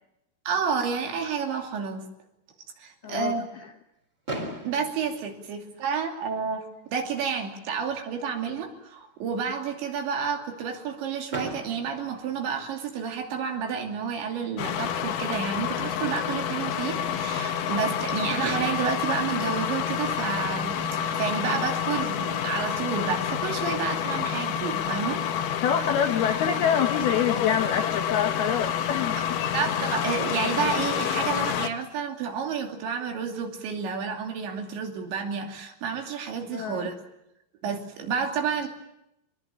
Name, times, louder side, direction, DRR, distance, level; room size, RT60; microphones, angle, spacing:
voice 1, 0.5-2.1 2.8-3.5 4.6-25.2 29.2-29.3 29.5-37.0 37.6-38.7, right 6 dB, 65° right, 4 dB, 4.8 m, -30 dB
voice 2, 3.0-3.3 25.6-29.2 36.5-36.9, left 8 dB, 70° left, 5 dB, 2.4 m, -26 dB
Fireworks, 4.3-6.3 7.1-7.2 7.4-7.6 7.9-8.0 11.3-13.1 14.8-14.9 18.0-18.1 18.4-20.7, right 1 dB, 15° right, 3.3 m, -39 dB
sound 1, 14.6-31.7, left 9 dB, 90° left, 1.8 m, -28 dB
23.5 x 21.5 x 8.8 m, 0.83 s
omnidirectional pair, 5.9 m